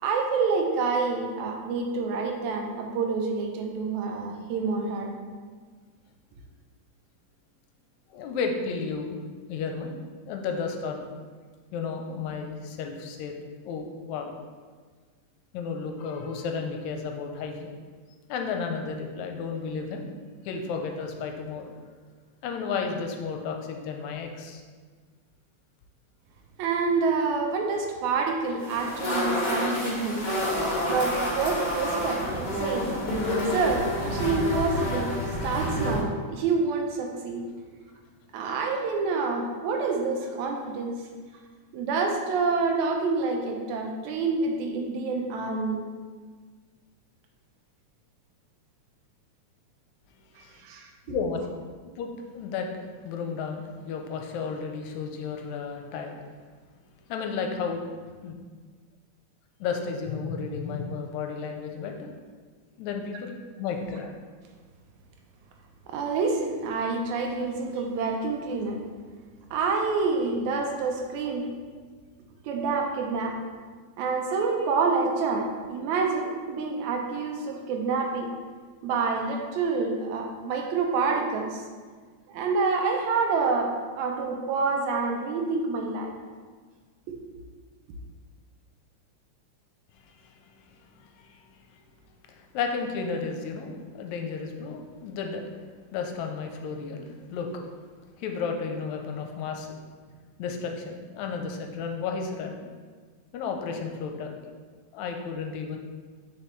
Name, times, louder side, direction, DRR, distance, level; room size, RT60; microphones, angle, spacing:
voice 1, 0.0-5.1 26.6-30.3 30.9-32.9 33.5-35.1 35.4-37.4 38.3-41.0 41.7-45.8 50.4-51.2 65.9-68.8 69.5-71.5 72.4-73.4 74.0-78.3 78.8-81.6 82.3-86.1 87.1-87.2, right 4 dB, 80° right, 2 dB, 2.0 m, -27 dB
voice 2, 8.1-9.2 9.5-10.0 10.3-11.1 11.7-13.4 13.7-14.3 15.5-17.7 18.3-20.1 20.5-21.7 22.4-24.6 50.4-50.5 51.1-51.4 52.0-52.7 53.0-56.1 57.1-57.9 58.2-58.3 59.6-62.1 62.8-64.1 90.7-91.4 91.7-91.8 92.3-95.4 95.9-97.5 98.1-99.8 100.4-102.6 103.3-104.4 104.9-105.8, left 5 dB, 80° left, 3 dB, 1.9 m, -33 dB
sound 1, 28.6-36.0, left 1 dB, 35° left, 1.5 m, -28 dB
6.5 x 4.9 x 3.1 m, 1.5 s
omnidirectional pair, 3.3 m